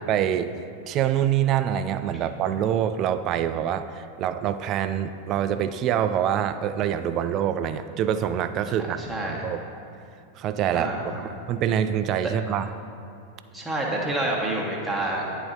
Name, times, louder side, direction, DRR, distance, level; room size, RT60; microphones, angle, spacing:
voice 1, 0.0-9.0 9.3-9.6 10.4-10.9 11.2-12.7, right 9 dB, 35° right, 11 dB, 0.3 m, -25 dB
voice 2, 9.0-9.4 10.7-11.3 13.5-15.2, right 1 dB, 5° right, -4 dB, 1.3 m, -28 dB
10.0 x 4.0 x 3.9 m, 2.4 s
figure-of-eight pair, 90°, 0 cm